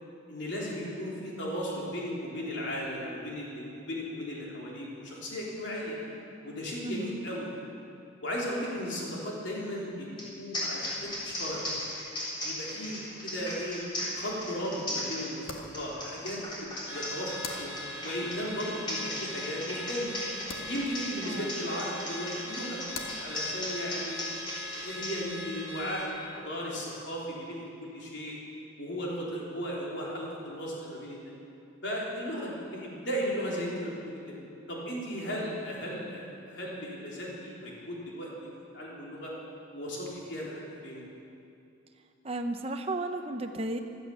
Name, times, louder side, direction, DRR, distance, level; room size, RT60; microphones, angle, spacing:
voice 1, 0.3-6.0 6.4-7.5 8.2-10.1 10.4-11.6 12.4-13.8 14.1-17.7 18.0-20.1 20.7-22.8 23.1-24.2 24.7-28.4 28.8-31.3 31.8-34.4 34.7-38.5 38.7-39.3 39.7-41.0, equal, 60° left, -4 dB, 3.6 m, -36 dB
voice 2, 6.8-7.1 21.2-21.5 42.2-43.8, right 2 dB, 30° right, 5 dB, 0.8 m, -34 dB
sound 1, 10.2-10.3 10.5-25.1, left 1 dB, 20° left, 3.5 m, -36 dB
sound 2, 13.3-26.2, left 4 dB, 90° left, 1.6 m, -50 dB
Car / Alarm, 16.9-26.1, left 1 dB, 10° right, 2.2 m, -41 dB
16.0 x 12.5 x 7.1 m, 2.6 s
head